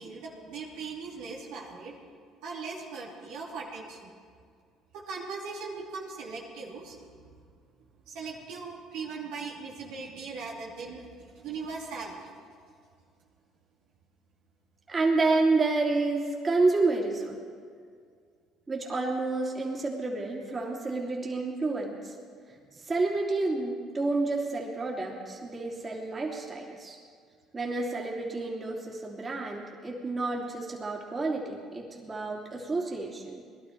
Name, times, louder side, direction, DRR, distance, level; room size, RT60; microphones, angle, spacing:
voice 1, 0.0-1.9 2.4-4.1 4.9-7.3 8.1-12.5, right 4 dB, 75° right, -3 dB, 2.7 m, -39 dB
voice 2, 14.9-17.4 18.7-22.1 22.8-27.0 27.5-33.4, right 3 dB, 30° right, -2 dB, 3.0 m, -29 dB
20.0 x 12.0 x 4.6 m, 2.1 s
supercardioid pair, 70°, 0 cm